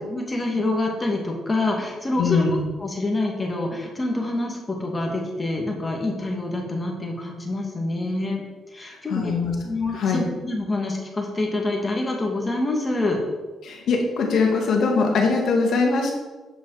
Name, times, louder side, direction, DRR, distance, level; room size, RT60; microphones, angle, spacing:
voice 1, 0.1-2.4 2.8-8.4 8.7-9.3 9.6-13.2, left 2 dB, 20° left, 0 dB, 2.3 m, -26 dB
voice 2, 2.2-2.6 8.9-9.5 9.9-10.2 13.6-16.1, left 4 dB, 70° left, 1 dB, 2.2 m, -22 dB
9.0 x 5.5 x 5.0 m, 1.2 s
cardioid pair, 90°, 0 cm